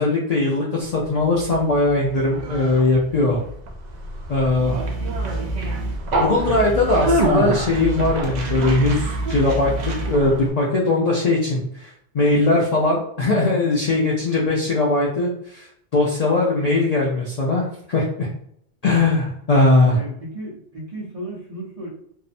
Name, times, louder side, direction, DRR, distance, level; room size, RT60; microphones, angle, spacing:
voice 1, 0.0-3.4 4.3-4.7 6.2-15.7 15.9-18.3 18.8-20.0, left 2 dB, 75° left, -4 dB, 0.3 m, -20 dB
Conversation, 1.0-10.5, right 1 dB, 70° right, 0.4 m, -25 dB
voice 2, 19.8-21.9, right 1 dB, 35° right, -6 dB, 0.8 m, -34 dB
2.7 x 2.0 x 2.5 m, 0.70 s
omnidirectional pair, 1.3 m